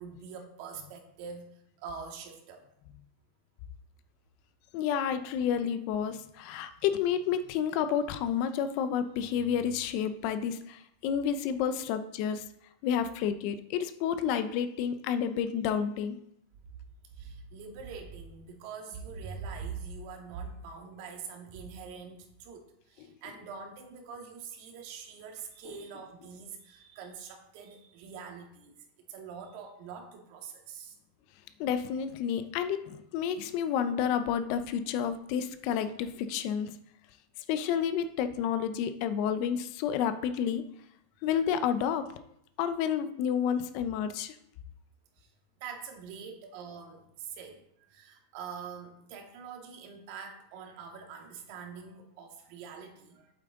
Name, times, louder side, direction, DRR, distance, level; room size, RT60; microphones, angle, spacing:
voice 1, 0.0-2.6 17.1-28.7 29.1-31.0 45.2-45.3 45.6-53.3, right 6 dB, 55° right, 3 dB, 2.0 m, -44 dB
voice 2, 4.7-12.5 12.8-16.2 23.0-23.1 25.6-25.7 31.6-36.7 37.5-40.6 41.2-42.1 42.6-44.3, left 8 dB, 55° left, 10 dB, 0.8 m, -30 dB
8.3 x 7.7 x 3.9 m, 0.75 s
hypercardioid pair, 125°, 0 cm